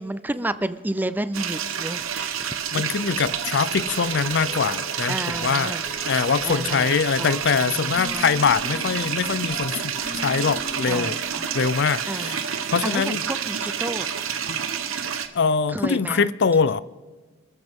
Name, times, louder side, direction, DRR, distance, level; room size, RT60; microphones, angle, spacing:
voice 1, 0.0-3.0 4.0-4.2 5.1-5.9 6.4-8.3 10.9-11.5 12.1-12.4 12.8-14.2 15.7-16.3, right 1 dB, 10° right, 0.5 m, -32 dB
sound 1, 1.3-15.3, right 8 dB, 75° right, 1.2 m, -29 dB
voice 2, 2.7-5.7 6.1-11.2 11.5-12.3 12.7-13.2 14.5-14.6 15.3-16.8, left 5 dB, 55° left, 0.5 m, -23 dB
sound 2, 3.2-11.6, left 2 dB, 20° left, 5.5 m, -40 dB
28.0 x 13.5 x 3.7 m
head